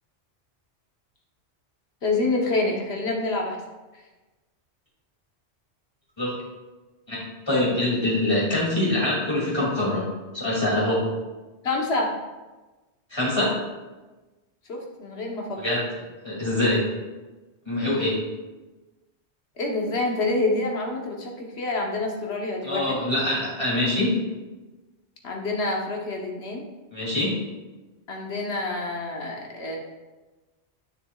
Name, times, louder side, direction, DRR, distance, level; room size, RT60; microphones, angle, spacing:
voice 1, 2.0-3.6 11.6-12.2 14.7-15.6 19.6-23.0 25.2-26.6 28.1-29.8, left 2 dB, 70° left, 0 dB, 1.4 m, -27 dB
voice 2, 7.5-11.1 13.1-13.5 15.6-15.8 16.2-16.9 17.7-18.2 22.6-24.1 26.9-27.3, left 1 dB, 25° left, -6 dB, 2.7 m, -24 dB
9.1 x 6.7 x 2.4 m, 1.2 s
omnidirectional pair, 1.1 m